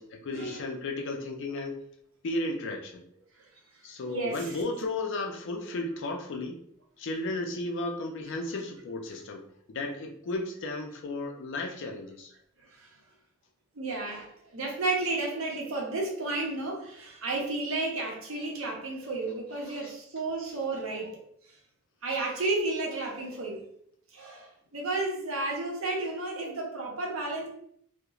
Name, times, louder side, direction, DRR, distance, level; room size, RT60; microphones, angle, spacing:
voice 1, 0.0-1.8 2.2-3.0 3.8-6.6 7.0-9.4 9.7-12.3 19.6-19.9, left 2 dB, 60° left, 3 dB, 0.4 m, -34 dB
voice 2, 4.1-4.5 12.6-12.9 13.8-14.3 14.5-21.2 22.0-23.6 24.1-27.5, right 2 dB, 70° right, -1 dB, 0.7 m, -32 dB
2.9 x 2.1 x 2.3 m, 0.68 s
head